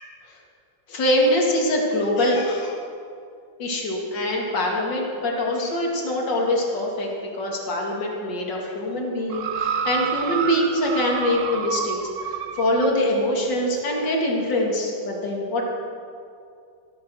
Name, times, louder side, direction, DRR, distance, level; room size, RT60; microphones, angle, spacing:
voice 1, 0.9-2.8 3.6-12.0 12.2-15.7, left 1 dB, 55° left, -1 dB, 2.9 m, -24 dB
sound 1, 9.3-13.0 13.8-13.9, right 7 dB, 75° right, 0.7 m, -29 dB
14.5 x 13.5 x 6.4 m, 2.4 s
omnidirectional pair, 2.3 m